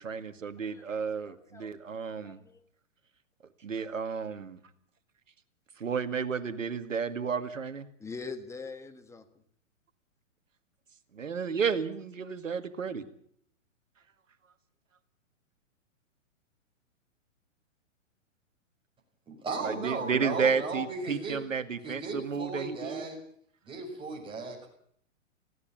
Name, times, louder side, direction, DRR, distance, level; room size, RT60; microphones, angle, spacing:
voice 1, 0.0-2.4 3.6-4.6 5.8-7.9 11.1-13.1 19.6-23.1, right 6 dB, 75° right, 10 dB, 2.1 m, -32 dB
voice 2, 1.2-1.7 2.2-2.6 3.8-3.9 8.0-9.2, left 4 dB, 5° left, 8 dB, 1.4 m, -43 dB
voice 3, 19.3-21.5 21.8-23.2 23.7-24.7, right 3 dB, 15° right, 0 dB, 6.0 m, -36 dB
20.5 x 16.0 x 8.9 m, 0.65 s
figure-of-eight pair, 120°, 39 cm